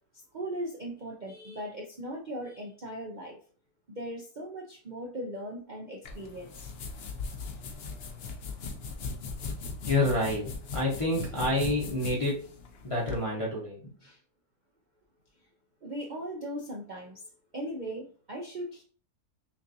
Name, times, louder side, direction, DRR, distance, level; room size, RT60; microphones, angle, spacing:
voice 1, 0.3-3.4 3.9-6.7 14.0-14.2 15.8-17.2 17.5-18.8, right 1 dB, 65° right, -1 dB, 0.4 m, -38 dB
sound 1, 6.0-13.2, left 4 dB, 60° left, 0.6 m, -39 dB
voice 2, 9.8-12.4 12.8-13.8, left 1 dB, 25° left, -5 dB, 0.8 m, -28 dB
5.7 x 2.6 x 2.7 m, 0.41 s
omnidirectional pair, 1.7 m